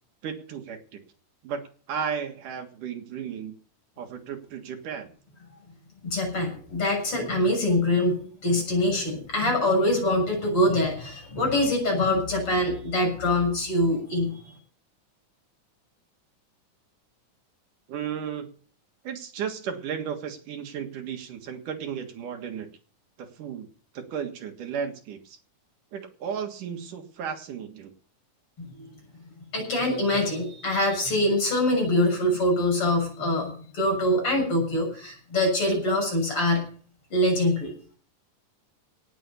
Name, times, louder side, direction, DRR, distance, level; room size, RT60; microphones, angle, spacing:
voice 1, 0.2-1.0 1.4-1.6 1.9-3.5 4.0-5.1 17.9-18.5 19.0-22.7 23.2-23.7 23.9-25.4 25.9-27.9, right 7 dB, 75° right, 5 dB, 3.2 m, -34 dB
voice 2, 6.0-14.5 28.6-28.9 29.5-36.7 37.1-37.7, left 1 dB, 40° left, 2 dB, 7.9 m, -24 dB
18.0 x 7.8 x 6.9 m, 0.43 s
omnidirectional pair, 3.7 m